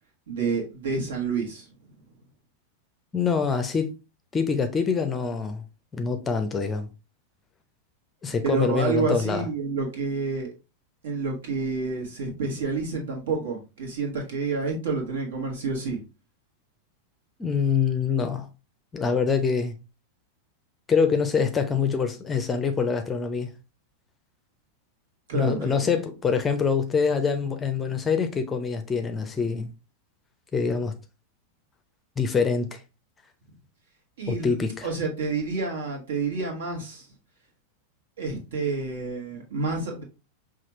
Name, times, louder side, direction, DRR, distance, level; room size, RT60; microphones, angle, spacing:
voice 1, 0.3-1.7 8.4-10.5 11.0-16.0 25.3-25.8 34.2-34.5 34.8-37.1 38.2-40.0, right 4 dB, 60° right, 1.4 m, -29 dB
voice 2, 3.1-3.9 4.3-5.6 5.9-6.9 8.2-9.4 17.4-18.5 18.9-19.7 20.9-23.5 25.3-29.7 30.5-30.9 32.2-32.8 34.3-34.9, left 5 dB, 20° left, 0.6 m, -25 dB
5.7 x 2.4 x 2.9 m
figure-of-eight pair, 90°, 0 cm